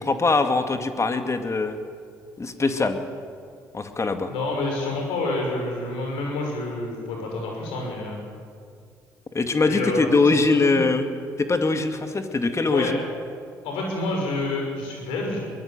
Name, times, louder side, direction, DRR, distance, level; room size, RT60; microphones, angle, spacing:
voice 1, 0.0-1.8 2.4-3.0 3.7-4.3 9.3-11.1 11.4-13.0, left 3 dB, 30° left, 7 dB, 2.2 m, -22 dB
voice 2, 4.3-8.2 9.6-10.1 10.7-10.8 12.7-12.9 13.6-15.4, left 2 dB, 70° left, 1 dB, 6.2 m, -28 dB
22.5 x 20.0 x 7.6 m, 2.2 s
hypercardioid pair, 50°, 10 cm